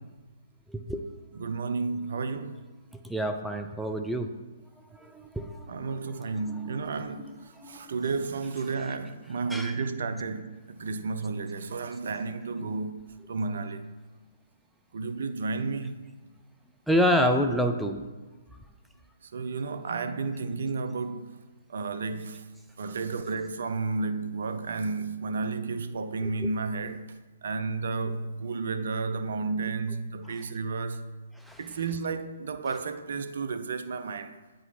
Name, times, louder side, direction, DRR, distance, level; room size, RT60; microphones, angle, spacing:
voice 1, 0.7-1.0 2.9-4.3 4.9-6.0 6.4-6.8 7.2-7.9 9.5-9.7 16.9-18.0 22.8-23.0 26.2-26.5 30.3-30.4 31.4-31.6, equal, ahead, 0.4 m, -29 dB
voice 2, 1.4-2.6 5.7-13.9 14.9-15.9 19.3-21.4 21.7-22.5 22.8-27.1 27.4-31.1 31.6-34.3, right 4 dB, 60° right, 0.5 m, -32 dB
9.0 x 3.8 x 4.1 m
figure-of-eight pair, 125°, 0 cm